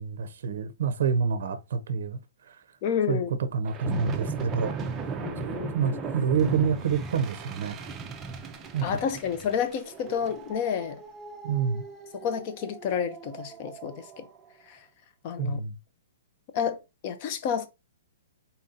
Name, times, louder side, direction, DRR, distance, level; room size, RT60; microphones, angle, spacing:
voice 1, 0.0-2.6 3.1-3.2 3.5-4.8 5.7-8.0 8.7-9.0 11.4-11.8 15.4-15.8, right 6 dB, 60° right, 0.5 m, -28 dB
voice 2, 2.8-3.3 5.2-6.0 8.8-11.0 12.1-14.3 14.7-14.8 15.2-15.6 16.5-16.8 17.0-17.7, left 7 dB, 35° left, 0.6 m, -30 dB
sound 1, 3.7-14.2, right 4 dB, 15° right, 0.5 m, -37 dB
4.1 x 2.7 x 3.7 m
hypercardioid pair, 165°, 0 cm